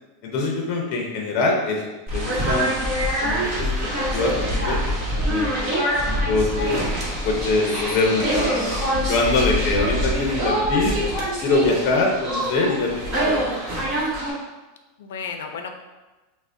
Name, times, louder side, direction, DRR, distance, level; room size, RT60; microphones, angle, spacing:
voice 1, 0.2-2.7 3.2-4.8 5.1-5.8 6.1-6.8 7.2-8.7 8.9-11.0 11.4-13.6, left 3 dB, 45° left, 0 dB, 0.6 m, -24 dB
sound 1, 2.1-14.3, equal, 30° right, 1.0 m, -24 dB
voice 2, 8.1-8.9 15.0-15.7, left 4 dB, 90° left, 5 dB, 0.4 m, -34 dB
5.9 x 2.1 x 2.6 m, 1.2 s
supercardioid pair, 155°, 0 cm